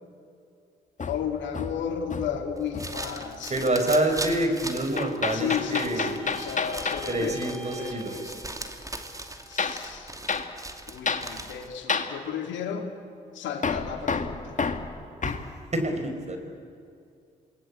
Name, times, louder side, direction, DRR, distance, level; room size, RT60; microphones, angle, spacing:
Hammer, 1.0-2.4 2.7-3.1 5.0-7.1 9.6-9.8 10.3-10.5 11.1-11.3 11.9-12.1 13.6-15.5, left 5 dB, 40° left, 2.0 m, -30 dB
voice 1, 1.1-3.6 5.3-8.4 9.5-10.1 10.9-12.9 13.3-14.6, left 8 dB, 75° left, 4 dB, 2.5 m, -33 dB
sound 1, 2.6-11.8, right 2 dB, 15° right, 2.6 m, -39 dB
voice 2, 3.5-6.1 7.1-8.2 15.2-15.4 15.7-16.4, right 1 dB, 35° right, 5 dB, 5.2 m, -27 dB
sound 2, 5.0-9.3, left 1 dB, 90° right, 7.7 m, -46 dB
27.5 x 20.5 x 8.5 m, 2.4 s
hypercardioid pair, 45°, 19 cm